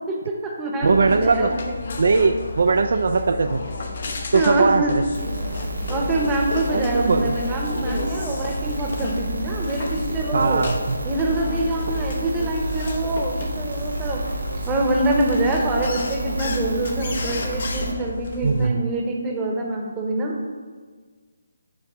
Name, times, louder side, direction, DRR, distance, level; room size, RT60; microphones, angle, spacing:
voice 1, 0.1-1.7 4.3-4.9 5.9-10.6 11.0-14.3 14.7-20.4, right 2 dB, 10° right, -1 dB, 0.9 m, -25 dB
sound 1, 0.8-18.7, left 4 dB, 55° left, 0.8 m, -32 dB
voice 2, 0.8-1.5 2.0-3.6 4.3-5.0 6.7-7.3 10.3-10.8 18.4-18.9, right 4 dB, 60° right, 7 dB, 0.3 m, -20 dB
sound 2, 5.1-17.9, right 3 dB, 80° right, 1.1 m, -31 dB
7.3 x 3.4 x 5.6 m, 1.5 s
figure-of-eight pair, 155°, 0 cm